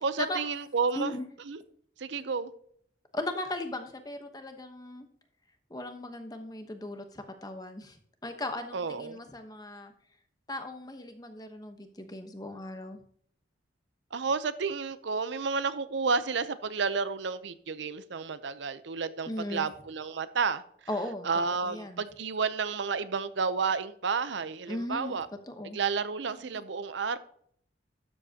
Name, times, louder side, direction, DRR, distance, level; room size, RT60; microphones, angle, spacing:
voice 1, 0.0-1.1 1.5-1.6 2.0-2.5 8.7-9.2 14.1-20.6 21.2-25.3 25.7-27.2, right 5 dB, 70° right, 13 dB, 0.6 m, -31 dB
voice 2, 0.9-1.2 2.2-2.3 3.1-5.1 5.7-9.9 10.5-13.0 19.3-19.7 20.9-21.3 21.6-22.0 24.7-25.1 25.5-25.8 26.5-26.6, left 1 dB, 20° left, 7 dB, 1.0 m, -37 dB
12.5 x 7.6 x 2.8 m, 0.62 s
head